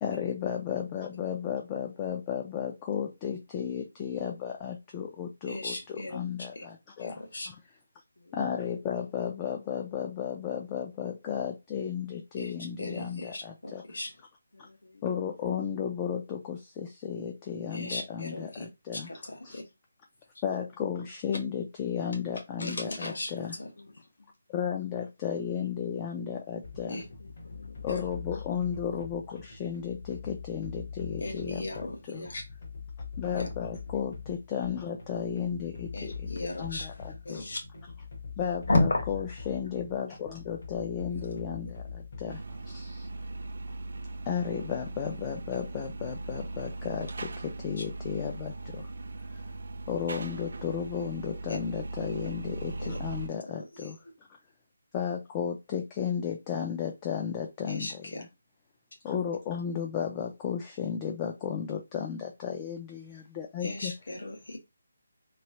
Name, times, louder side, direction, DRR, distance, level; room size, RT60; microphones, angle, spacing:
voice 1, 0.0-7.6 8.3-13.8 14.6-14.7 15.0-19.6 20.4-23.6 24.5-27.0 27.8-32.3 33.2-37.4 38.4-43.1 44.3-48.9 49.9-54.0 54.9-58.3 59.0-63.9, left 8 dB, 15° left, 0.3 m, -34 dB
voice 2, 5.5-6.2 6.5-6.6 7.0-7.5 12.4-12.5 12.8-14.1 17.7-18.7 18.9-19.6 22.6-23.3 23.6-23.7 26.9-27.0 27.9-28.0 31.2-32.4 33.3-33.5 35.9-36.9 37.2-37.6 38.7-39.0 41.1-41.2 51.5-51.6 52.8-52.9 57.7-57.9 63.6-64.6, left 2 dB, 60° left, 1.4 m, -34 dB
voice 3, 14.5-15.0 19.5-19.7 20.3-20.4 23.5-24.1 27.0-27.9 37.0-37.1, left 2 dB, 80° left, 1.0 m, -55 dB
sound 1, 26.6-42.6, left 5 dB, 40° left, 1.1 m, -42 dB
sound 2, 42.3-53.3, right 2 dB, 50° right, 0.5 m, -39 dB
3.3 x 3.1 x 2.9 m
hypercardioid pair, 180°, 0 cm